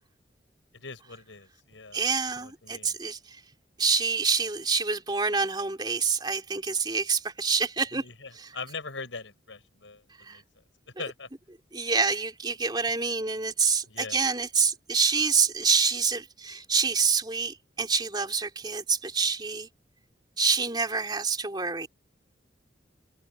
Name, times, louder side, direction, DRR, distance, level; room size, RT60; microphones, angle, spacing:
voice 1, 0.7-2.0 2.3-3.0 7.9-10.0 10.3-10.4 11.0-11.3 13.9-14.2, left 4 dB, 85° left, 6.1 m, -41 dB
voice 2, 1.9-3.4 3.8-8.0 8.3-8.5 10.2-10.4 11.7-19.7 20.4-21.9, right 5 dB, 25° right, 3.2 m, -27 dB
head